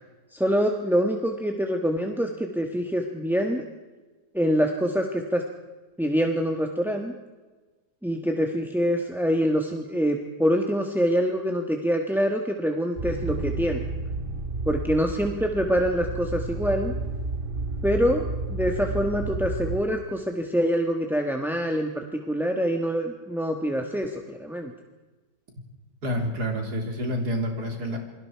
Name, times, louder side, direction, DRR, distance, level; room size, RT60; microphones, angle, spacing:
voice 1, 0.3-3.6 4.3-5.4 6.0-7.1 8.0-13.8 14.6-16.9 17.8-24.7, equal, ahead, 3 dB, 1.1 m, -25 dB
sound 1, 13.0-19.8, right 3 dB, 30° right, 1.5 m, -31 dB
voice 2, 26.0-28.0, equal, 65° right, 2 dB, 3.7 m, -28 dB
28.0 x 22.5 x 4.6 m, 1.3 s
omnidirectional pair, 1.8 m